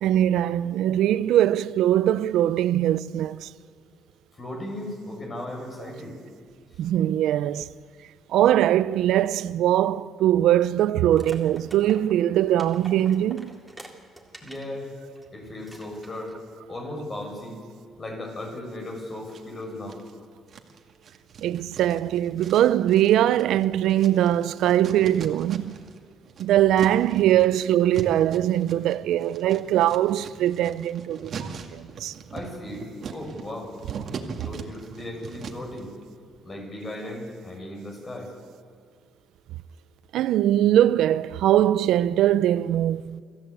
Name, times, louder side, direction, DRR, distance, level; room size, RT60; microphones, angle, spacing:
voice 1, 0.0-3.5 6.8-7.7 8.3-13.6 21.4-25.8 26.4-32.1 40.1-43.2, right 12 dB, 85° right, 0.6 m, -21 dB
voice 2, 4.3-6.2 14.4-14.9 15.3-16.3 16.7-17.6 18.0-20.0 32.3-33.7 34.4-35.9 36.4-38.3, left 1 dB, 35° left, 7.0 m, -36 dB
sound 1, 11.1-14.7 15.2-15.3 15.6-16.4, right 1 dB, 5° right, 3.4 m, -46 dB
sound 2, 19.3-20.1 20.5-26.0 26.2-35.8, right 5 dB, 55° right, 2.1 m, -40 dB
26.0 x 14.5 x 8.4 m
cardioid pair, 90°, 0 cm